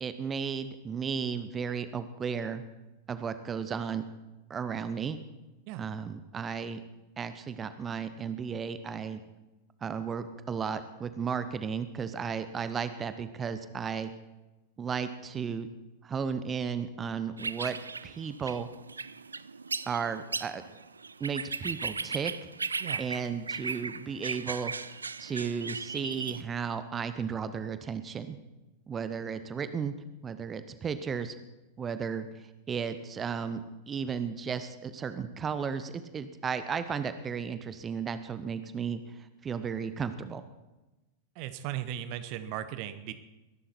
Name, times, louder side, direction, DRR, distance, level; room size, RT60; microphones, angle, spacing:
voice 1, 0.0-2.6 3.1-4.0 4.5-5.2 5.8-6.8 7.2-9.2 9.8-14.1 14.8-15.7 16.0-17.8 18.0-18.7 19.9-20.6 21.2-22.3 23.0-24.7 25.2-28.4 28.9-29.9 30.2-31.3 31.8-40.4, right 6 dB, 20° right, 12 dB, 0.9 m, -34 dB
sound 1, 17.4-26.4, right 4 dB, 75° right, 0.4 m, -37 dB
voice 2, 41.4-43.1, right 12 dB, 45° right, 12 dB, 0.9 m, -37 dB
21.0 x 11.5 x 4.4 m, 1.1 s
figure-of-eight pair, 90°, 0 cm